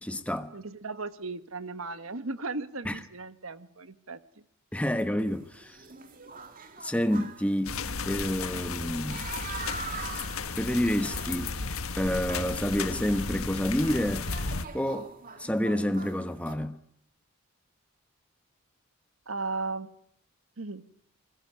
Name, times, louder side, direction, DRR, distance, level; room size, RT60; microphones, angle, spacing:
voice 1, 0.0-0.5 2.8-3.0 4.7-5.8 6.8-9.2 10.6-11.5 12.0-14.3 14.7-15.1 15.4-16.8, equal, 5° left, 1.1 m, -29 dB
voice 2, 0.5-4.2 19.3-19.9 20.6-20.8, right 3 dB, 75° right, 1.5 m, -36 dB
sound 1, 5.3-16.5, right 4 dB, 40° right, 2.4 m, -44 dB
sound 2, 7.7-14.7, left 4 dB, 80° left, 1.6 m, -34 dB
28.5 x 21.0 x 9.5 m
head